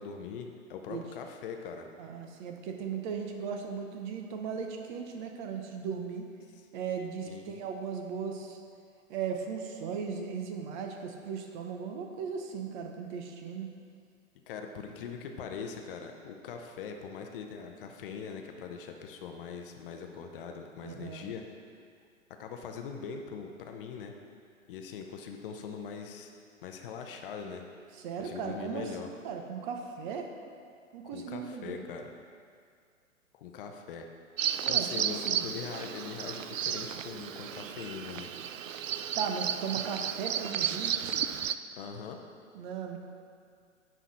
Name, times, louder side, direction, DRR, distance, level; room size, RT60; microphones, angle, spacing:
voice 1, 0.0-1.9 6.5-6.6 7.3-7.6 14.5-21.4 22.4-24.1 24.7-26.3 26.6-27.6 28.2-29.1 31.1-32.1 33.3-34.1 34.7-38.3 41.8-42.2, left 6 dB, 45° left, 4 dB, 0.9 m, -41 dB
voice 2, 2.0-6.3 6.7-8.6 9.1-13.7 20.8-21.3 27.9-28.9 29.2-30.3 30.9-31.9 34.6-35.5 39.2-40.9 42.5-43.0, right 6 dB, 35° right, 3 dB, 0.9 m, -37 dB
Bird vocalization bird call bird song, 34.4-41.6, right 9 dB, 75° right, 0.5 m, -33 dB
10.5 x 3.9 x 6.4 m, 2.2 s
figure-of-eight pair, 110°, 39 cm